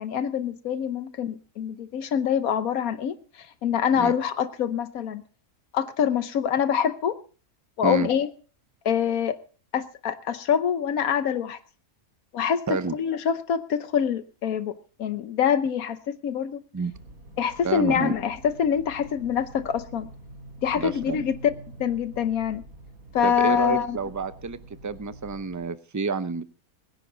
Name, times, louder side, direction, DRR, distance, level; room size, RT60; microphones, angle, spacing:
voice 1, 0.0-5.2 5.7-7.2 7.8-8.3 8.8-9.4 9.7-11.6 12.3-12.6 12.9-14.7 15.0-16.6 17.4-20.1 20.6-21.3 21.8-22.6 23.1-24.0, left 8 dB, 80° left, 12 dB, 1.3 m, -25 dB
sound 1, 16.9-25.6, right 1 dB, 80° right, 4.2 m, -46 dB
voice 2, 17.6-18.2 20.7-21.3 23.2-24.6 24.8-26.4, right 4 dB, 25° right, 13 dB, 0.4 m, -29 dB
22.0 x 10.0 x 3.9 m, 0.38 s
omnidirectional pair, 1.5 m